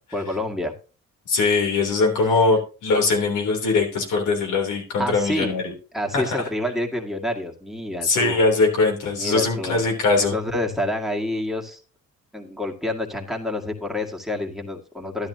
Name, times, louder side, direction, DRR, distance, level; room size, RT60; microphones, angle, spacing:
voice 1, 0.1-0.7 5.0-5.6 5.9-8.4 9.1-9.8 10.2-11.8 12.3-15.3, left 1 dB, ahead, 2 dB, 2.0 m, -28 dB
voice 2, 1.3-5.7 6.1-6.5 8.0-10.3, left 3 dB, 85° left, 2 dB, 3.3 m, -21 dB
12.0 x 10.5 x 2.8 m, 0.35 s
cardioid pair, 90°, 30 cm